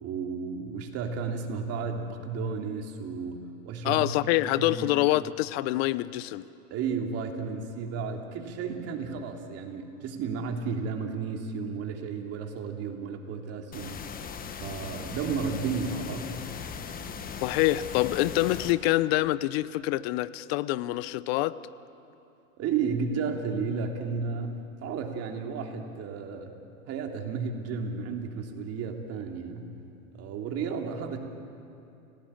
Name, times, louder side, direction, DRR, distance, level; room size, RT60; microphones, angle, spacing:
voice 1, 0.0-4.1 4.6-4.9 6.7-14.0 14.6-16.3 22.6-26.5 26.9-29.7 30.1-31.2, right 5 dB, 35° right, 3 dB, 3.1 m, -33 dB
voice 2, 3.8-6.4 17.4-21.6, left 17 dB, 45° left, 17 dB, 0.8 m, -26 dB
sound 1, 13.7-18.7, left 6 dB, 20° left, 1.5 m, -38 dB
29.5 x 17.5 x 8.8 m, 2.7 s
hypercardioid pair, 125°, 42 cm